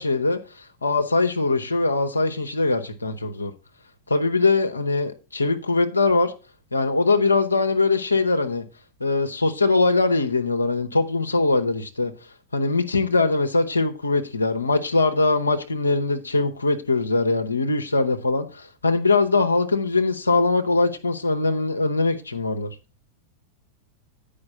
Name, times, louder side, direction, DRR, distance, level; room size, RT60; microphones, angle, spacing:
voice 1, 0.0-3.5 4.1-6.3 6.7-8.6 9.0-12.1 12.5-22.7, left 3 dB, 80° left, 0.7 m, -22 dB
9.6 x 5.1 x 5.5 m
figure-of-eight pair, 90°, 0 cm